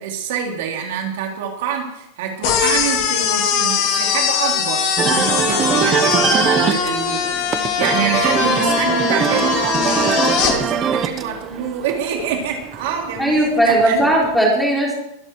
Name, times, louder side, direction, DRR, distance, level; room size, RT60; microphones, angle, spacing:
voice 1, 0.0-14.1, right 7 dB, 60° right, 1 dB, 3.4 m, -26 dB
sound 1, 2.4-10.5, left 7 dB, 40° left, 3.1 m, -20 dB
sound 2, 5.0-14.4, right 7 dB, 20° right, 0.9 m, -22 dB
voice 2, 13.2-14.9, right 1 dB, ahead, -3 dB, 4.2 m, -17 dB
23.5 x 11.5 x 4.7 m, 0.79 s
supercardioid pair, 175°, 0 cm